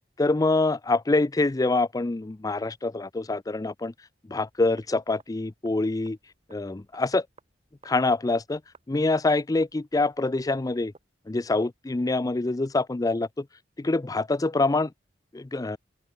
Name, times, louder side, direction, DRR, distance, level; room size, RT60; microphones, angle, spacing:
voice 1, 0.2-3.9 4.3-6.2 6.5-7.3 7.8-8.6 8.9-10.9 11.3-13.5 13.8-14.9 15.3-15.8, left 2 dB, 20° left, 0.5 m, -25 dB
sound 1, 4.5-11.1, right 3 dB, 35° right, 6.3 m, -60 dB
open air
head